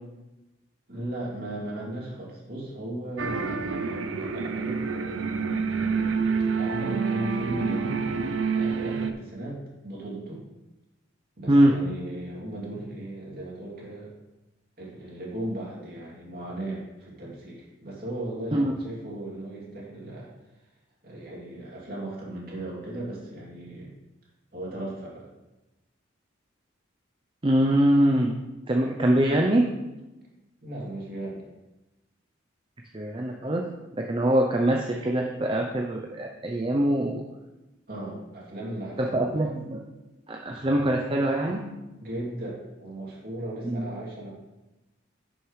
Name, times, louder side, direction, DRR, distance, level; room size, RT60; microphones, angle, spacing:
voice 1, 0.9-4.8 5.8-10.4 11.4-14.1 14.8-20.3 21.0-23.9 24.5-25.3 30.6-31.4 37.9-39.5 42.0-44.3, right 1 dB, 45° right, -5 dB, 2.9 m, -37 dB
sound 1, 3.2-9.1, right 5 dB, 80° right, 0.6 m, -27 dB
voice 2, 27.4-28.4 28.7-29.6 32.9-33.7 34.1-37.2 39.0-39.8 40.3-41.7 43.7-43.9, right 1 dB, 25° right, 1 dB, 0.6 m, -23 dB
11.0 x 6.3 x 3.2 m, 1.0 s
head